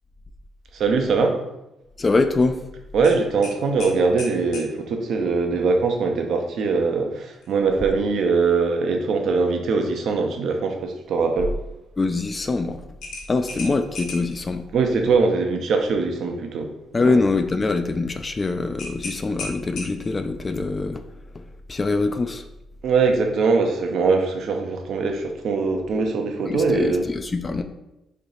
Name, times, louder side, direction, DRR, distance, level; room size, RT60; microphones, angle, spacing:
voice 1, 0.7-1.4 2.9-11.5 14.7-16.7 17.0-17.2 22.8-27.0, right 4 dB, 70° right, 4 dB, 0.6 m, -22 dB
voice 2, 2.0-2.6 12.0-12.8 13.3-14.7 16.9-21.0 21.3-22.4 26.5-27.6, left 3 dB, 30° left, 8 dB, 0.3 m, -24 dB
sound 1, 3.0-4.7 7.3-7.6 8.0-8.1 13.0-14.4 18.8-20.2, left 3 dB, 80° left, 1.2 m, -36 dB
3.3 x 2.8 x 4.0 m, 0.91 s
cardioid pair, 90°, 0 cm